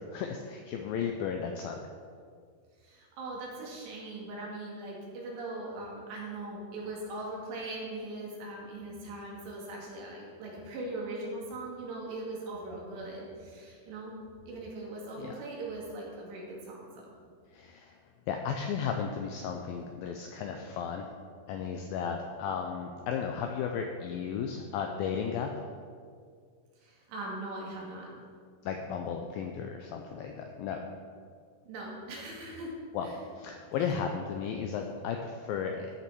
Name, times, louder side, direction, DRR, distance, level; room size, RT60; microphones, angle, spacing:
voice 1, 0.1-1.8 15.2-15.4 17.5-18.0 18.3-21.1 21.5-25.7 28.6-30.9 32.9-33.1 33.4-35.9, left 7 dB, 85° left, 3 dB, 2.1 m, -34 dB
voice 2, 2.8-14.2 14.5-17.1 26.8-28.1 31.7-32.7 33.0-33.2, right 2 dB, 85° right, -3 dB, 4.3 m, -40 dB
14.0 x 7.0 x 4.6 m, 2.1 s
omnidirectional pair, 4.9 m